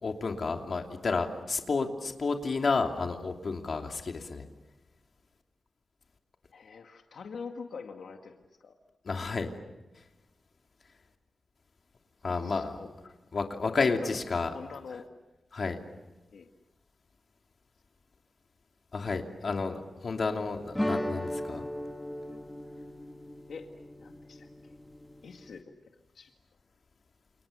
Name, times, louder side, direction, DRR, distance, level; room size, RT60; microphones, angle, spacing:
voice 1, 0.0-4.4 9.0-9.5 12.2-12.8 13.3-14.5 15.5-15.8 18.9-21.7, left 4 dB, 55° left, 3 dB, 3.0 m, -31 dB
voice 2, 6.5-8.8 12.3-13.2 13.6-15.1 16.3-16.5 23.5-23.7 24.0-24.8 25.2-26.3, left 5 dB, 85° left, 4 dB, 1.9 m, -45 dB
sound 1, 20.7-25.6, left 1 dB, 10° left, 1.3 m, -37 dB
30.0 x 29.0 x 6.8 m, 1.1 s
wide cardioid pair, 105°, 0 cm